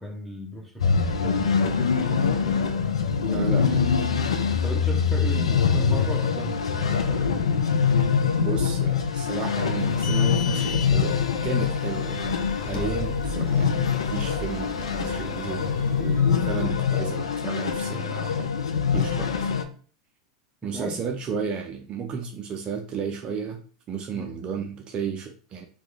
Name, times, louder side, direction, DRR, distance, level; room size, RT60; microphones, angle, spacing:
voice 1, 0.0-2.6 3.2-3.7 4.5-7.7 8.1-8.2 20.7-21.1 24.2-24.4, right 1 dB, 5° left, 0 dB, 0.9 m, -37 dB
sound 1, 0.8-19.6, left 6 dB, 85° left, 0.4 m, -24 dB
voice 2, 3.3-3.9 8.4-18.5 18.9-19.6 20.6-23.6 23.9-25.6, right 6 dB, 35° right, 4 dB, 0.4 m, -33 dB
sound 2, 9.8-16.6, left 3 dB, 35° left, 0.8 m, -37 dB
3.0 x 2.2 x 3.6 m, 0.42 s
hypercardioid pair, 95°, 3 cm